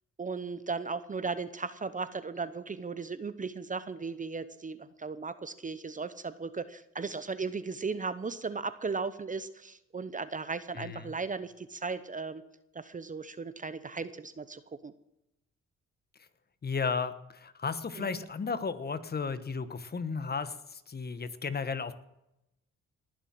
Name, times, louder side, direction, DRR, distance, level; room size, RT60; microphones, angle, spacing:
voice 1, 0.2-12.4 12.7-14.9 17.9-18.2, right 4 dB, 25° right, 14 dB, 0.8 m, -36 dB
voice 2, 10.8-11.1 16.6-21.9, left 5 dB, 30° left, 13 dB, 1.3 m, -34 dB
19.5 x 7.4 x 7.6 m, 0.86 s
cardioid pair, 90°, 30 cm